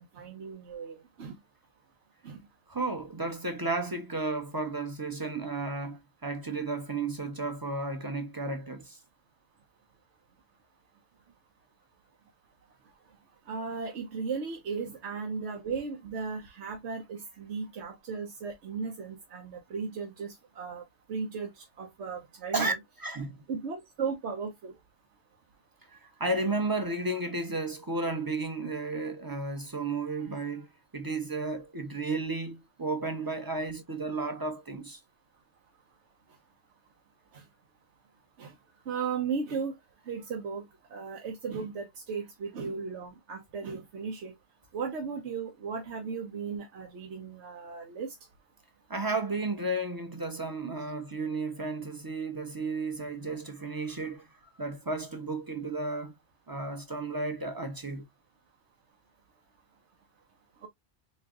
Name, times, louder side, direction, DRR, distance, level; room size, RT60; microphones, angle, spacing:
voice 1, 0.0-1.4 2.2-2.5 13.5-22.7 23.5-24.7 37.3-37.4 38.4-38.5 38.9-39.8 40.0-44.3 44.7-48.1, right 5 dB, 85° right, 1.1 m, -36 dB
voice 2, 2.7-9.0 22.5-22.7 23.0-23.4 25.9-30.7 30.9-35.0 48.9-54.3 54.6-56.1 56.5-58.0, right 2 dB, 25° right, 0.7 m, -33 dB
4.1 x 3.2 x 2.3 m
omnidirectional pair, 1.1 m